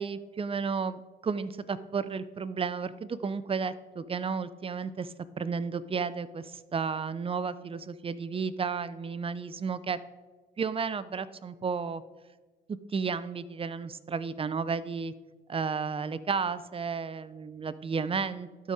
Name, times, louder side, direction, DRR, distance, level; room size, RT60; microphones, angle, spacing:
voice 1, 0.0-10.0 10.6-12.0 12.9-15.1 15.5-18.7, right 5 dB, 30° right, 15 dB, 0.4 m, -33 dB
12.5 x 4.2 x 4.8 m, 1.2 s
cardioid pair, 90°, 20 cm